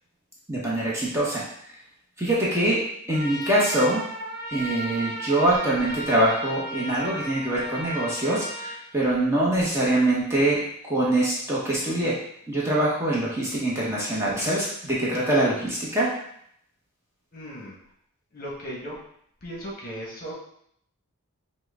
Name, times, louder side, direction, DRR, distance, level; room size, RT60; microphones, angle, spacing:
voice 1, 0.5-1.8 2.2-2.8 3.1-4.0 4.5-12.2 12.5-16.1, right 1 dB, 10° right, -6 dB, 0.9 m, -24 dB
Trumpet, 3.1-8.8, equal, 45° right, 1.1 m, -35 dB
voice 2, 17.3-17.7 18.3-18.9 19.4-20.3, equal, 40° left, -3 dB, 1.1 m, -36 dB
5.8 x 2.2 x 3.5 m, 0.69 s
head